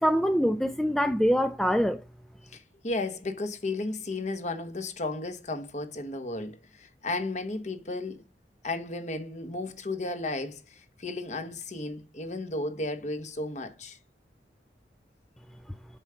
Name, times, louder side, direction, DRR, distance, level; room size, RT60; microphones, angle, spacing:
voice 1, 0.0-2.0, equal, ahead, 0.3 m, -24 dB
voice 2, 2.5-8.2 8.6-14.0, left 2 dB, 40° left, 1.2 m, -34 dB
7.3 x 5.0 x 5.7 m
head